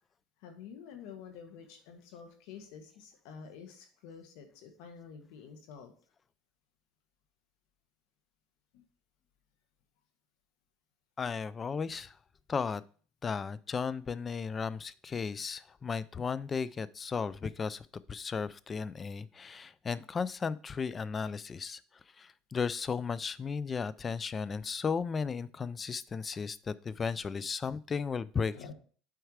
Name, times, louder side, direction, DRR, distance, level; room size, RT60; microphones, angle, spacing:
voice 1, 0.4-5.9 8.7-8.8 28.5-28.7, left 6 dB, 70° left, 6 dB, 1.7 m, -49 dB
voice 2, 11.2-12.2 12.5-12.8 13.2-21.8 22.2-28.5, left 5 dB, 25° left, 18 dB, 0.4 m, -35 dB
8.0 x 4.6 x 4.9 m, 0.43 s
supercardioid pair, 130°, 0 cm